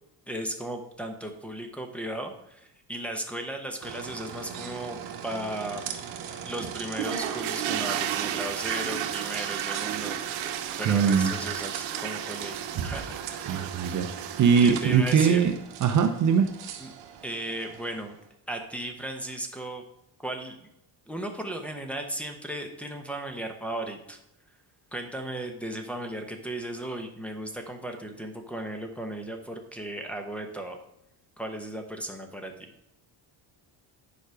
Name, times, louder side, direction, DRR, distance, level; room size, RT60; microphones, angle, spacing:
voice 1, 0.3-5.0 5.2-5.8 6.4-10.2 10.8-13.7 14.6-15.4 16.8-16.9 17.2-18.2 18.5-19.8 20.2-20.7 21.1-24.2 24.9-30.8 31.4-32.7, right 1 dB, 5° left, 2 dB, 0.9 m, -36 dB
sound 1, 3.8-18.2, right 8 dB, 70° right, 1.2 m, -39 dB
sound 2, 7.0-15.4, right 10 dB, 90° right, 0.9 m, -33 dB
voice 2, 10.9-11.3 13.5-14.1 14.4-15.5 15.8-16.5, right 6 dB, 40° right, 7 dB, 0.6 m, -21 dB
9.4 x 4.9 x 4.7 m, 0.82 s
cardioid pair, 145°, 45 cm